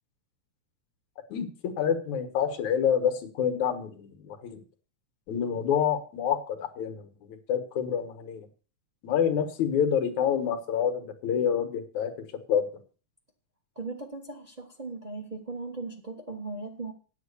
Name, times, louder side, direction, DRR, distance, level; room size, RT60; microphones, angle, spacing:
voice 1, 1.8-4.6 5.3-8.5 9.0-12.1 12.5-12.7, left 8 dB, 75° left, 8 dB, 2.7 m, -27 dB
voice 2, 13.7-16.9, right 3 dB, 50° right, 4 dB, 0.4 m, -38 dB
9.4 x 8.3 x 6.8 m, 0.38 s
omnidirectional pair, 3.4 m